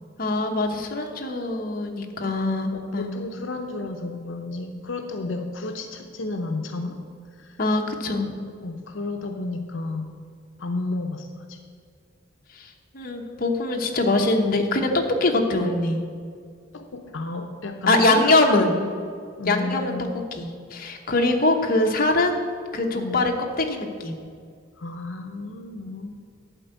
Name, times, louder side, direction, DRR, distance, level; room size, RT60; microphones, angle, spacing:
voice 1, 0.2-3.1 7.6-8.3 12.5-16.0 17.9-18.7 19.4-19.9 20.3-22.4 22.7-24.2, left 2 dB, 50° left, 2 dB, 1.0 m, -23 dB
voice 2, 2.7-7.0 7.4-7.6 8.6-10.1 10.6-11.6 16.7-18.7 19.4-20.1 22.9-23.2 24.8-26.2, left 2 dB, 85° left, 5 dB, 0.7 m, -32 dB
11.5 x 4.5 x 8.0 m, 2.2 s
head